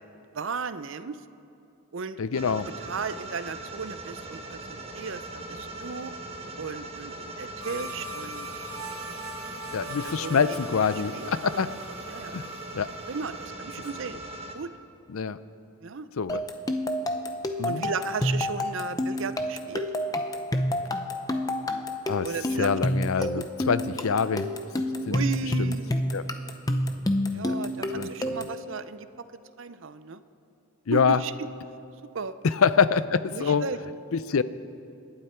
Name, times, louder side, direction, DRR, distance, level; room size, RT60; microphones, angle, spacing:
voice 1, 0.3-1.2 1.9-2.2 2.8-6.1 6.6-8.5 10.0-10.4 11.1-11.3 12.1-12.4 13.1-14.2 14.5-14.7 15.8-16.1 17.6-19.9 22.2-22.8 23.3-23.4 25.1-26.0 27.3-29.1 29.6-30.2 30.9-31.5 32.1-32.3 33.3-33.8, right 5 dB, 60° right, 13 dB, 0.6 m, -35 dB
voice 2, 2.2-2.7 9.7-11.7 12.3-12.5 12.7-12.9 15.1-15.4 16.2-16.4 17.6-17.8 22.1-22.3 22.6-24.5 25.1-25.2 25.6-25.7 26.1-26.3 27.5-27.6 27.9-28.4 30.9-31.2 32.4-33.7 34.1-34.4, left 6 dB, 70° left, 15 dB, 0.5 m, -25 dB
sound 1, 2.3-14.5, right 2 dB, 30° right, 1.2 m, -40 dB
sound 2, 7.6-13.5, right 1 dB, 75° right, 1.1 m, -41 dB
sound 3, 16.3-28.6, left 1 dB, 15° left, 0.7 m, -29 dB
27.0 x 11.5 x 4.5 m, 2.6 s
head